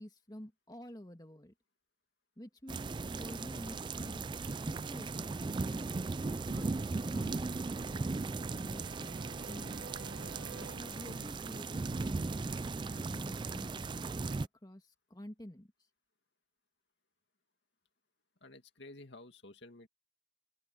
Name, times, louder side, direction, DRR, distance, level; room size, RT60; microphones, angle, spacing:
voice 1, 0.0-1.5 2.4-4.3 4.6-5.8 6.3-9.2 9.5-9.8 10.5-15.7, equal, 20° left, 2.1 m, -50 dB
sound 1, 2.7-14.5, right 3 dB, 25° right, 0.3 m, -37 dB
sound 2, 8.0-12.7, right 3 dB, 65° right, 1.4 m, -52 dB
voice 2, 18.4-19.9, left 2 dB, 60° left, 2.3 m, -52 dB
open air
head